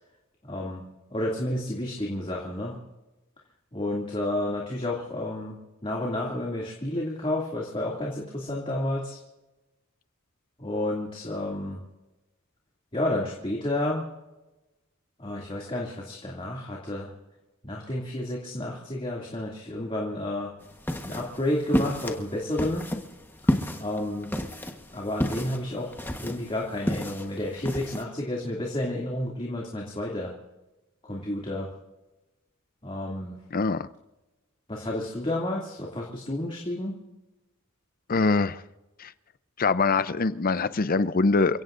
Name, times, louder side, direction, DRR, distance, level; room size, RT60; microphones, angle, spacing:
voice 1, 0.4-0.8 1.1-2.8 3.7-5.6 5.8-9.2 10.6-11.8 12.9-14.0 15.2-17.1 17.6-20.5 21.0-22.9 23.8-24.3 24.9-30.3 31.0-31.7 32.8-33.4 34.7-37.0, left 1 dB, 25° left, -3 dB, 2.5 m, -31 dB
sound 1, 20.6-28.0, equal, 10° left, 1.3 m, -31 dB
voice 2, 33.5-33.9 38.1-38.6 39.0-39.1 39.6-41.6, left 4 dB, 45° left, 14 dB, 0.6 m, -23 dB
29.0 x 17.0 x 2.6 m, 1.1 s
head